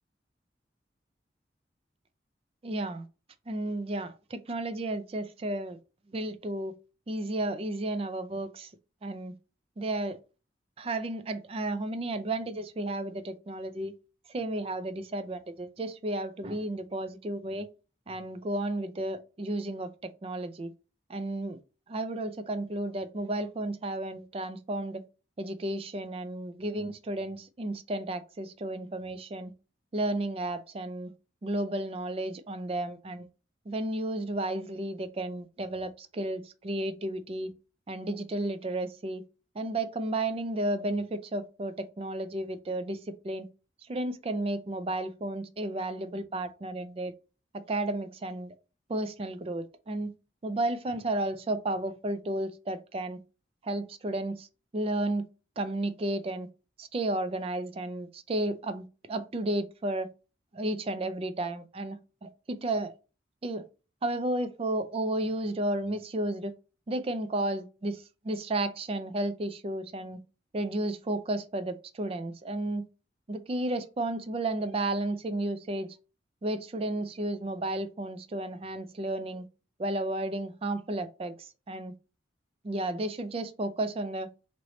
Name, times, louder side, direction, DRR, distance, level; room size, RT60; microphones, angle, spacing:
voice 1, 2.6-3.1 3.5-5.8 6.1-6.7 7.1-8.7 9.0-9.3 9.8-10.2 10.8-13.9 14.3-17.7 18.1-20.7 21.1-21.6 21.9-25.0 25.4-29.5 29.9-31.1 31.4-33.3 33.7-37.5 37.9-39.2 39.5-43.5 43.8-47.1 47.5-48.5 48.9-50.1 50.4-53.2 53.6-54.5 54.7-55.3 55.6-56.5 56.8-60.1 60.5-62.9 63.4-63.6 64.0-66.5 66.9-70.2 70.5-72.9 73.3-76.0 76.4-79.5 79.8-81.9 82.6-84.3, right 1 dB, 30° right, 0.4 m, -33 dB
3.1 x 3.0 x 3.9 m
head